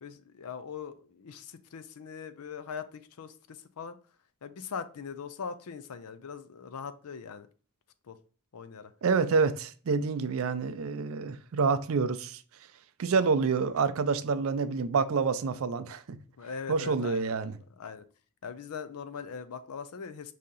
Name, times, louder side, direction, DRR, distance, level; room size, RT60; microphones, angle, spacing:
voice 1, 0.0-4.0 4.4-7.5 8.1-8.2 8.5-8.9 16.4-18.0 18.4-20.3, left 6 dB, 85° left, 0.5 m, -41 dB
voice 2, 9.0-12.4 13.0-16.2 16.7-17.6, right 5 dB, 65° right, 0.4 m, -27 dB
4.9 x 2.8 x 3.8 m
head